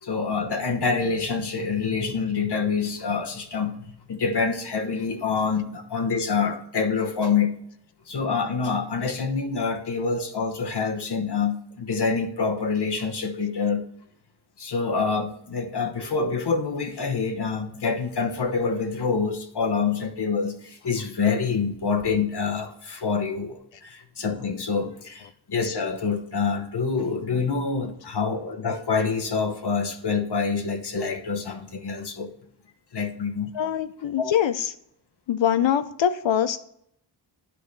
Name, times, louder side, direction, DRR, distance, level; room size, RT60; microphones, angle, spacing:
voice 1, 0.0-7.5 8.1-13.9 14.6-32.3 32.9-33.5 34.2-34.3, left 5 dB, 60° left, 4 dB, 1.0 m, -26 dB
voice 2, 33.5-34.7 35.3-36.6, left 9 dB, 80° left, 11 dB, 0.6 m, -23 dB
10.5 x 4.9 x 3.2 m, 0.72 s
wide cardioid pair, 95°, 44 cm